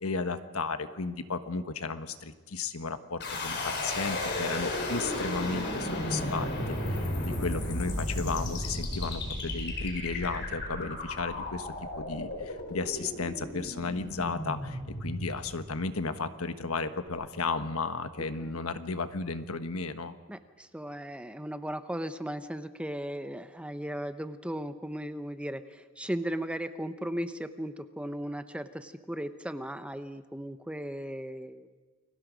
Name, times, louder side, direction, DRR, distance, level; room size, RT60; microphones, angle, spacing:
voice 1, 0.0-20.1, left 4 dB, 80° left, 9 dB, 1.3 m, -34 dB
sound 1, 3.2-16.1, left 1 dB, 50° left, 4.6 m, -34 dB
voice 2, 20.3-31.7, equal, 5° right, 10 dB, 0.8 m, -37 dB
29.5 x 22.5 x 5.2 m, 1.4 s
head